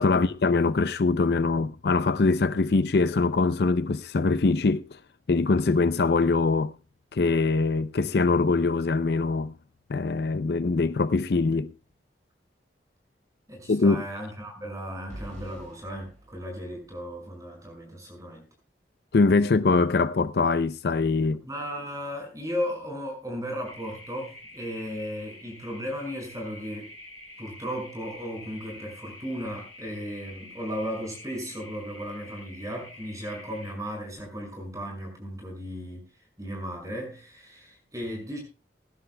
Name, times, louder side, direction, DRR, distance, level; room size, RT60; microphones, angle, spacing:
voice 1, 0.0-5.0 5.3-6.7 7.1-9.5 9.9-11.7 13.7-14.1 19.1-21.4, left 3 dB, 65° left, 0.5 m, -23 dB
voice 2, 13.5-18.5 21.4-26.9 27.4-36.1 36.4-38.4, equal, 20° right, 5.7 m, -35 dB
sound 1, 15.1-17.2, right 1 dB, 45° right, 5.1 m, -45 dB
sound 2, 23.6-33.7, left 1 dB, 15° left, 8.0 m, -47 dB
21.5 x 11.0 x 2.2 m
head